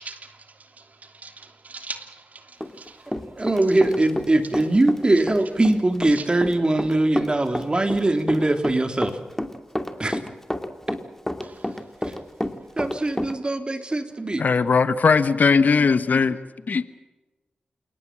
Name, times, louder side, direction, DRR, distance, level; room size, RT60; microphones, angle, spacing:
voice 1, 0.0-3.2 3.7-3.8 6.1-6.3 11.4-11.8 12.1-12.2, right 4 dB, 60° right, 3.0 m, -41 dB
Run, 2.6-4.3 4.5-13.3, left 1 dB, 10° left, 2.7 m, -29 dB
voice 2, 3.4-9.2 10.0-10.2 12.8-14.4, right 2 dB, 35° right, 3.3 m, -21 dB
voice 3, 14.4-16.4 16.7-16.9, left 5 dB, 70° left, 1.2 m, -19 dB
28.5 x 18.5 x 7.6 m
cardioid pair, 50°, 3 cm